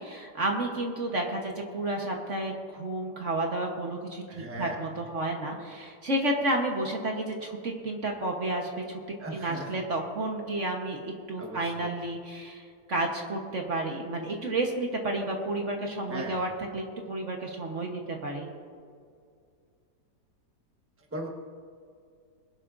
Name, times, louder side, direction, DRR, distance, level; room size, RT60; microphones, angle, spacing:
voice 1, 0.0-9.0 9.3-18.5, right 1 dB, 50° right, 1 dB, 1.4 m, -31 dB
voice 2, 4.3-4.8 9.2-9.8 11.4-11.9 16.1-16.4 21.1-21.3, right 1 dB, 10° right, 0 dB, 1.2 m, -38 dB
22.0 x 12.0 x 2.6 m, 2.3 s
omnidirectional pair, 1.8 m